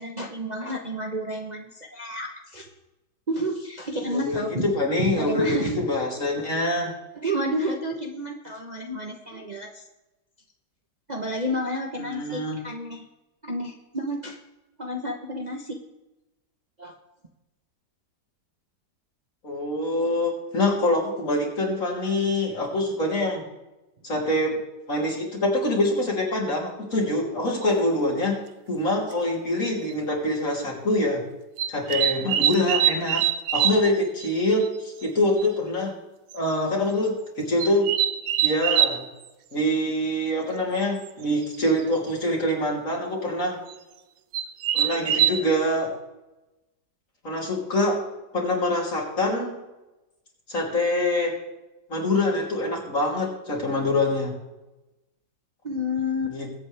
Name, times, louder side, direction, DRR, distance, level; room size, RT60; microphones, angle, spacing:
voice 1, 0.0-2.7 3.3-4.7 5.1-5.8 7.1-9.9 11.1-13.1 13.4-14.4 14.8-15.8 16.8-17.0 55.6-56.4, equal, 30° right, 1 dB, 0.9 m, -30 dB
voice 2, 4.0-6.9 12.0-12.6 19.4-23.4 24.0-24.6 24.9-28.4 28.7-31.2 31.7-33.3 33.5-35.9 36.3-37.9 38.4-39.1 39.5-43.6 44.7-45.9 47.2-48.0 48.3-49.6 50.5-51.4 51.9-54.4 56.3-56.5, left 1 dB, 50° left, -2 dB, 3.4 m, -25 dB
sound 1, 27.6-27.7 29.1-29.2 29.9-30.1 31.6-33.9 34.2-34.3 34.6-34.7 35.0-35.1 35.4-35.5 36.3-36.5 37.6-39.0 41.1-41.2 41.4-41.8 43.7-43.8 44.3-45.3, right 10 dB, 85° right, 1.4 m, -23 dB
21.5 x 8.5 x 3.4 m, 1.0 s
omnidirectional pair, 1.8 m